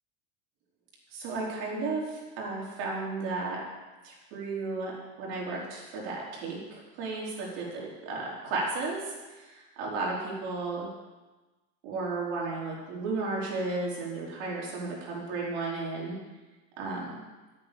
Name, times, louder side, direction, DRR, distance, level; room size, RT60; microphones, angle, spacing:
voice 1, 1.1-3.6 4.0-10.9 11.8-16.1 16.8-17.2, right 3 dB, 50° right, -4 dB, 4.6 m, -34 dB
13.0 x 9.0 x 7.1 m, 1.2 s
cardioid pair, 175°, 30 cm